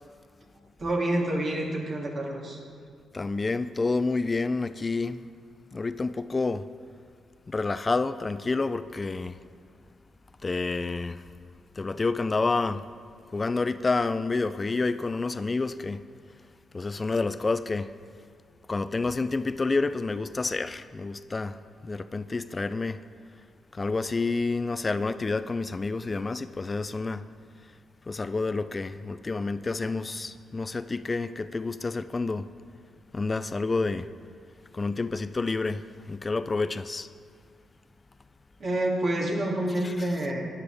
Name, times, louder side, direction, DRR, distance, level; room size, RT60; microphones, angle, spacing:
voice 1, 0.8-2.6 38.6-40.4, right 1 dB, 55° right, 2.4 m, -28 dB
voice 2, 3.1-5.2 5.7-6.6 7.5-9.4 10.4-11.2 11.8-12.8 13.3-16.0 16.7-17.9 18.7-23.0 23.7-27.2 28.1-32.5 33.1-34.1 34.7-37.1 39.8-40.2, left 3 dB, 35° left, 0.4 m, -29 dB
13.0 x 9.9 x 3.4 m
hypercardioid pair, 45°, 0 cm